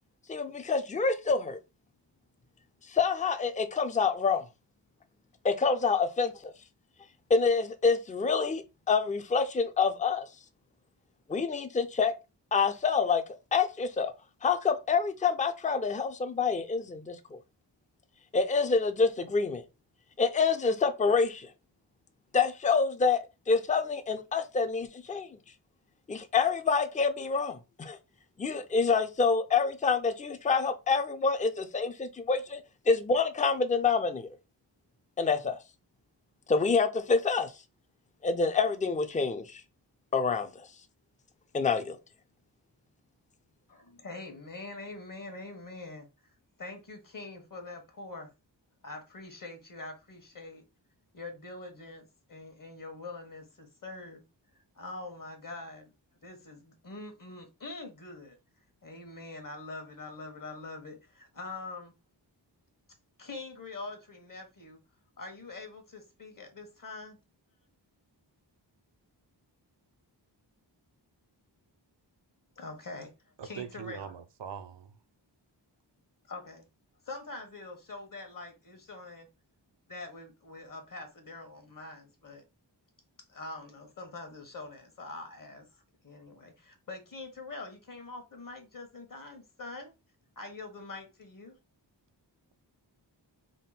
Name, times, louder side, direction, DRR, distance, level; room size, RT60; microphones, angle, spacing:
voice 1, 0.3-1.6 2.9-4.4 5.4-6.5 7.3-10.3 11.3-12.1 12.5-13.2 13.5-14.1 14.4-17.4 18.3-19.6 20.2-21.5 22.3-23.2 23.5-25.3 26.1-28.0 28.4-32.6 32.9-34.3 35.2-35.6 36.5-37.5 38.2-39.6 40.1-40.5 41.5-42.0, left 5 dB, 20° left, 0.5 m, -27 dB
voice 2, 43.7-46.3 46.6-48.3 48.8-50.6 51.1-54.2 54.7-55.9 56.2-58.4 58.8-61.9 63.2-64.8 65.2-67.2 72.6-73.1 73.4-74.1 76.3-76.6 77.0-79.3 79.9-82.4 83.3-89.9 90.4-91.6, left 3 dB, 45° left, 1.2 m, -44 dB
voice 3, 73.4-74.9, right 8 dB, 75° right, 0.6 m, -42 dB
3.7 x 2.1 x 4.0 m
wide cardioid pair, 65°, 44 cm